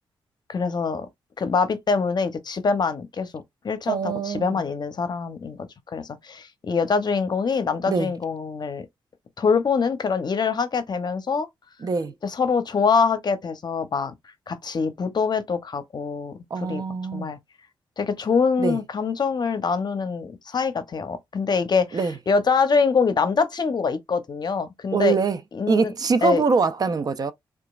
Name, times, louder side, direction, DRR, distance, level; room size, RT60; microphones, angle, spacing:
voice 1, 0.5-1.1 1.4-5.6 5.9-8.9 9.4-11.5 12.2-14.1 14.5-16.3 16.7-16.8 17.1-17.4 18.0-22.0 22.3-25.2 25.5-25.9 26.2-26.4, left 5 dB, 50° left, 0.7 m, -24 dB
voice 2, 3.9-4.6 7.9-8.1 11.8-12.1 16.5-17.3 18.6-18.8 21.9-22.1 24.9-25.4 25.7-27.3, right 5 dB, 45° right, 0.4 m, -23 dB
2.9 x 2.4 x 2.3 m
cardioid pair, 65°, 9 cm